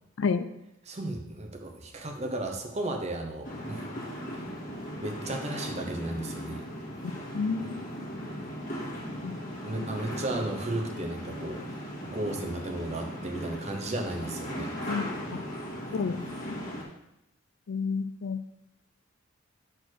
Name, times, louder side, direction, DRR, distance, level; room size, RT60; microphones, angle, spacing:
voice 1, 0.8-3.8 5.0-6.6 9.6-11.8 12.0-14.7, right 2 dB, 30° right, 4 dB, 0.9 m, -34 dB
sound 1, 3.4-16.8, equal, 35° left, 1.8 m, -38 dB
voice 2, 7.3-7.8 9.2-9.4 9.8-9.9 14.9-15.0 15.9-16.6 17.7-18.4, left 5 dB, 60° left, 11 dB, 0.4 m, -30 dB
6.8 x 4.5 x 6.2 m, 0.86 s
head